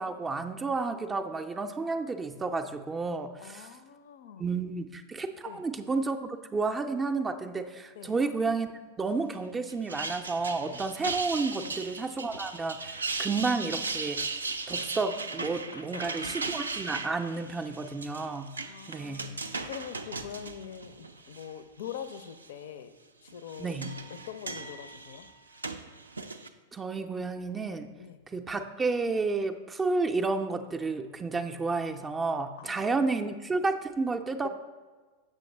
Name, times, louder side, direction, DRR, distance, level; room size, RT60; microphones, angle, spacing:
voice 1, 0.0-3.7 4.4-8.7 9.0-14.2 14.7-18.5 18.9-19.3 23.6-23.9 26.7-27.9 28.3-34.5, right 3 dB, 15° right, 6 dB, 0.4 m, -31 dB
voice 2, 3.4-4.5 5.5-5.6 7.9-8.1 11.6-11.8 15.7-16.4 18.6-19.4 19.6-22.9 23.2-23.8 24.1-25.3 28.0-28.2 32.6-33.3 34.4-34.5, left 8 dB, 55° left, 12 dB, 0.4 m, -44 dB
sound 1, 9.7-21.5 21.9-22.5 23.3-26.5, right 3 dB, 75° right, 0.4 m, -37 dB
7.5 x 6.3 x 3.2 m, 1.4 s
figure-of-eight pair, 90°, 0 cm